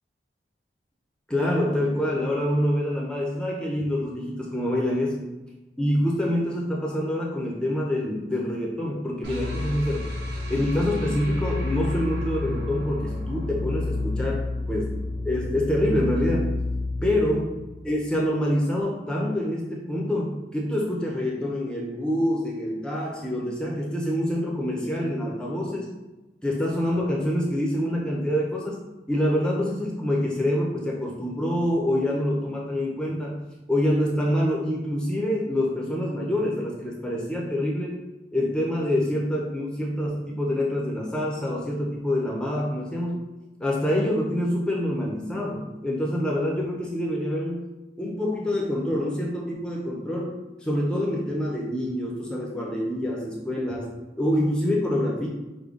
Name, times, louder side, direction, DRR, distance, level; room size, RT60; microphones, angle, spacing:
voice 1, 1.3-5.2 5.8-10.1 10.5-14.9 15.2-16.5 17.0-17.5 17.8-25.9 26.4-28.8 29.1-33.4 33.7-38.0 38.3-43.2 43.6-47.6 48.0-50.3 50.6-53.9 54.2-55.3, left 1 dB, 5° left, -3 dB, 0.6 m, -26 dB
sound 1, 9.2-18.3, left 2 dB, 65° right, 0.7 m, -30 dB
5.0 x 2.2 x 3.7 m, 1.1 s
head